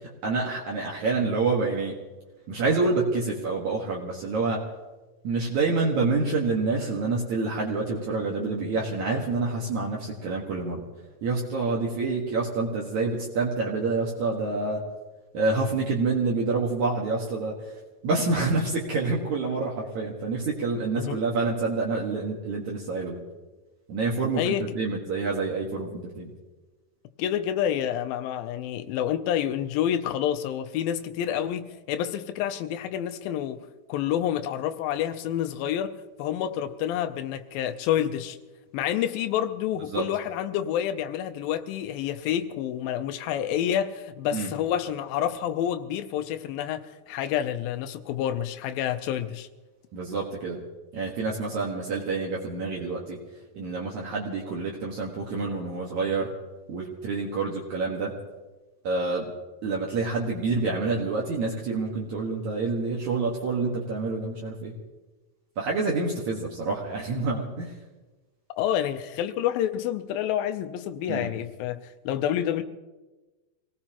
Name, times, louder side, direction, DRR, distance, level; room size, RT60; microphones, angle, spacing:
voice 1, 0.2-1.9 2.5-4.6 5.2-10.9 11.2-14.8 15.3-17.5 18.0-23.2 23.9-26.3 39.9-40.0 44.3-44.5 49.9-50.6 50.9-53.2 53.5-56.3 56.7-58.1 58.8-59.3 59.6-64.7 65.6-67.7 71.1-71.3, right 3 dB, 60° right, 2.7 m, -27 dB
voice 2, 24.4-24.8 27.2-33.6 33.9-35.9 36.2-38.4 38.7-46.8 47.1-49.5 68.5-72.6, left 10 dB, 90° left, 2.5 m, -28 dB
26.0 x 17.5 x 3.0 m
omnidirectional pair, 4.0 m